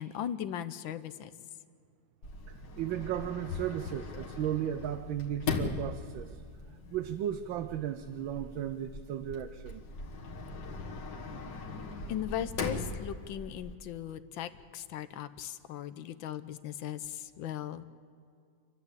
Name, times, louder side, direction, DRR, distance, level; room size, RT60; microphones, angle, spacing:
voice 1, 0.0-1.3 12.1-17.8, left 10 dB, 80° left, 13 dB, 1.6 m, -38 dB
Sliding door, 2.2-13.7, left 4 dB, 65° left, 2.3 m, -40 dB
voice 2, 2.5-6.4 6.9-9.8, right 10 dB, 80° right, 9 dB, 1.5 m, -35 dB
28.5 x 12.0 x 8.3 m, 2.3 s
omnidirectional pair, 2.1 m